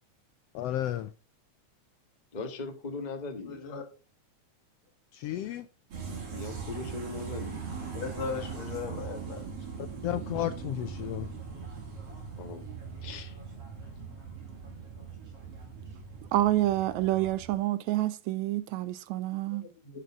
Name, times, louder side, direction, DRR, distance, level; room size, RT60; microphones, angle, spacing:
voice 1, 0.5-1.1 5.1-5.6 10.0-11.3, left 12 dB, 90° left, 1.4 m, -32 dB
voice 2, 2.3-3.6 6.3-7.6 12.4-12.6 13.0-13.4, left 3 dB, 30° left, 0.7 m, -39 dB
voice 3, 3.5-3.8 7.9-9.4 19.5-20.0, left 5 dB, 65° left, 3.1 m, -38 dB
sound 1, 5.9-17.6, right 5 dB, 50° right, 3.5 m, -40 dB
voice 4, 16.3-19.7, right 15 dB, 80° right, 1.8 m, -28 dB
11.0 x 6.8 x 3.6 m
omnidirectional pair, 3.4 m